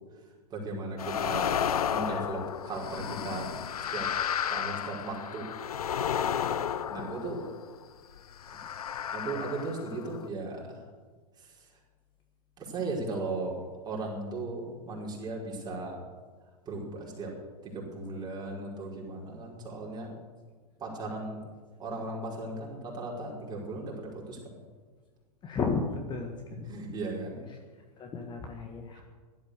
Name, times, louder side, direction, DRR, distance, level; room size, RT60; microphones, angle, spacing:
voice 1, 0.5-3.6 3.9-4.1 4.5-5.5 6.9-7.4 8.5-8.6 9.1-10.8 12.6-16.0 16.6-17.3 17.6-20.1 20.8-21.4 21.8-24.6 26.6-27.4 28.9-29.0, right 2 dB, 20° right, -3 dB, 5.0 m, -37 dB
sound 1, 1.0-7.8 8.4-10.3, left 8 dB, 65° left, 0.7 m, -32 dB
voice 2, 25.4-26.8 28.0-29.0, left 4 dB, 20° left, 3 dB, 1.6 m, -34 dB
16.5 x 12.0 x 6.7 m, 1.4 s
figure-of-eight pair, 95°, 21 cm